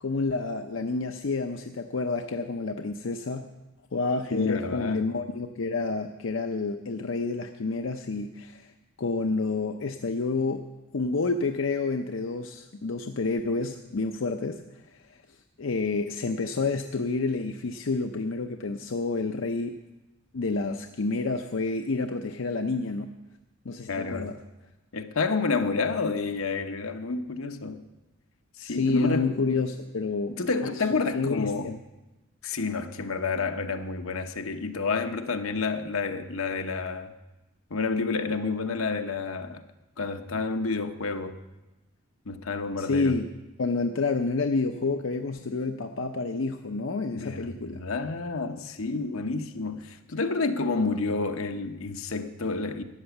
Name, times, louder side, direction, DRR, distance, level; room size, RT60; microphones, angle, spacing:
voice 1, 0.0-3.5 3.9-8.7 9.0-10.6 10.9-14.6 14.9-15.0 15.6-19.8 20.3-23.1 23.6-24.4 28.6-30.4 30.6-31.8 42.8-43.3 43.6-47.8, left 3 dB, 65° left, 0.6 m, -29 dB
voice 2, 4.3-5.1 23.9-24.3 24.9-27.8 28.6-29.4 30.4-31.7 32.4-37.1 37.7-39.6 40.0-41.4 42.3-43.2 47.1-52.8, left 4 dB, 80° left, 1.0 m, -29 dB
13.0 x 9.0 x 7.1 m
head